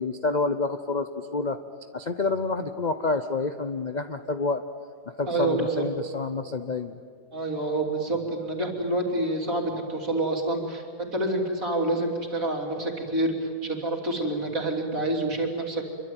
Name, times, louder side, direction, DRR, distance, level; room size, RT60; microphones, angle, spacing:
voice 1, 0.0-1.6 1.9-4.6 5.2-7.0, left 3 dB, 40° left, 9 dB, 0.7 m, -28 dB
voice 2, 5.3-5.8 7.3-15.9, right 2 dB, 50° right, 1 dB, 3.7 m, -27 dB
26.5 x 23.5 x 9.2 m, 2.1 s
omnidirectional pair, 1.8 m